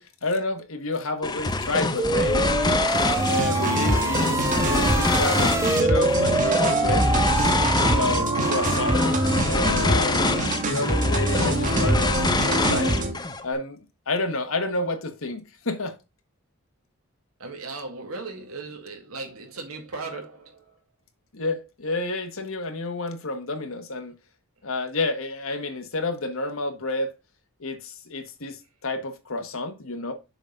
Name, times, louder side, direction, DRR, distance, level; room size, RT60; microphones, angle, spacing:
voice 1, 0.0-2.8 3.2-7.5 7.9-9.0 9.4-13.0 13.4-13.8 14.1-15.9 21.3-24.1 24.6-27.1 27.6-30.1, left 2 dB, 70° left, 1.3 m, -30 dB
sound 1, 1.2-13.5, left 3 dB, 20° left, 0.6 m, -26 dB
sound 2, 2.0-9.4, right 3 dB, 15° right, 0.3 m, -26 dB
sound 3, 3.1-13.1, right 1 dB, 40° right, 1.3 m, -25 dB
voice 2, 17.4-20.7, right 3 dB, 85° right, 1.9 m, -37 dB
6.9 x 3.9 x 5.2 m
head